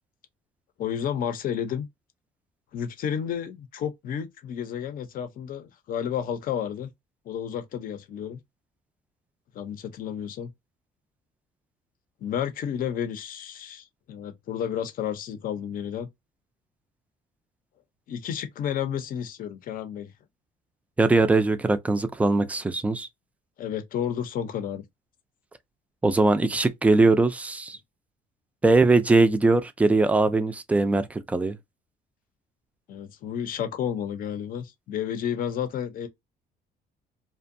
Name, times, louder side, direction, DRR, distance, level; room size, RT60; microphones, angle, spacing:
voice 1, 0.8-1.9 2.7-6.9 7.3-8.4 9.5-10.5 12.2-16.1 18.1-20.1 23.6-24.8 32.9-36.1, left 9 dB, 55° left, 0.6 m, -31 dB
voice 2, 21.0-23.1 26.0-27.8 28.6-31.6, right 3 dB, 10° right, 0.3 m, -21 dB
2.5 x 2.2 x 2.5 m
cardioid pair, 110°, 17 cm